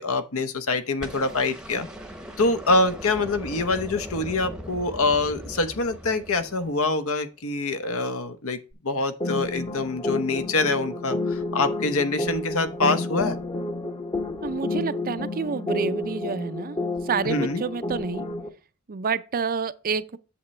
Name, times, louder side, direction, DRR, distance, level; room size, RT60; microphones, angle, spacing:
voice 1, 0.0-1.9 2.4-8.6 8.8-13.4 17.2-17.6, left 3 dB, 65° left, 1.0 m, -25 dB
sound 1, 1.0-7.2 8.7-8.8, equal, 5° right, 0.9 m, -39 dB
sound 2, 9.2-18.5, left 2 dB, 25° left, 1.0 m, -30 dB
voice 2, 14.4-16.8 17.0-18.3 18.9-20.2, right 5 dB, 40° right, 0.5 m, -28 dB
8.1 x 7.1 x 3.2 m
head